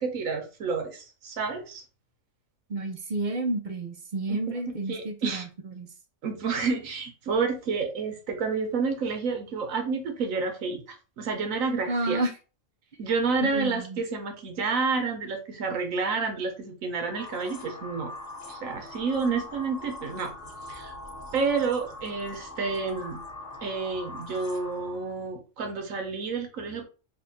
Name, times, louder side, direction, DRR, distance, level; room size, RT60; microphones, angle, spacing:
voice 1, 0.0-1.8 4.3-4.4 4.7-5.4 6.2-12.2 13.0-18.1 18.5-20.3 20.7-20.9 21.3-23.2 23.6-26.9, right 4 dB, 80° right, 4 dB, 1.3 m, -29 dB
voice 2, 2.7-5.9 11.9-12.3 13.4-14.0, right 2 dB, 50° right, 5 dB, 0.6 m, -30 dB
sound 1, 17.0-25.1, left 2 dB, 35° left, 0.9 m, -42 dB
3.4 x 2.3 x 3.9 m, 0.34 s
omnidirectional pair, 1.4 m